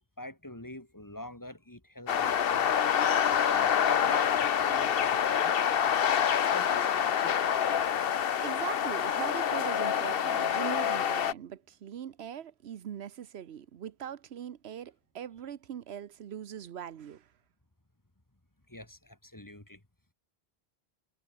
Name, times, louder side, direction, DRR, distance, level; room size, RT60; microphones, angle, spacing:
voice 1, 0.2-2.7 3.1-5.8 6.3-7.4 18.7-19.8, left 1 dB, 20° left, 2.2 m, -46 dB
sound 1, 2.1-11.3, left 8 dB, 65° left, 1.0 m, -27 dB
voice 2, 8.4-17.3, right 9 dB, 80° right, 1.1 m, -41 dB
omnidirectional pair, 1.1 m